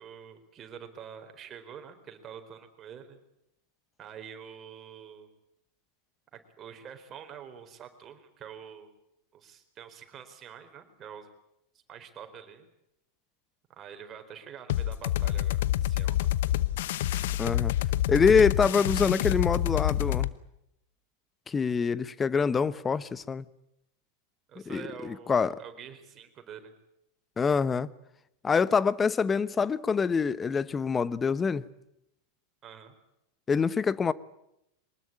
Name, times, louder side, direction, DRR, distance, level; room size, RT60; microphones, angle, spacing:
voice 1, 0.0-3.2 4.0-5.3 6.3-8.9 9.3-11.3 11.9-12.7 13.7-16.3 24.5-26.7 32.6-32.9, right 8 dB, 30° right, 4.4 m, -46 dB
sound 1, 14.7-20.3, left 13 dB, 65° left, 0.9 m, -27 dB
voice 2, 17.4-17.7 18.1-20.3 21.5-23.5 24.7-25.6 27.4-27.9 28.4-31.7 33.5-34.1, left 5 dB, 20° left, 1.0 m, -25 dB
23.5 x 20.0 x 8.8 m
hypercardioid pair, 95°, 0 cm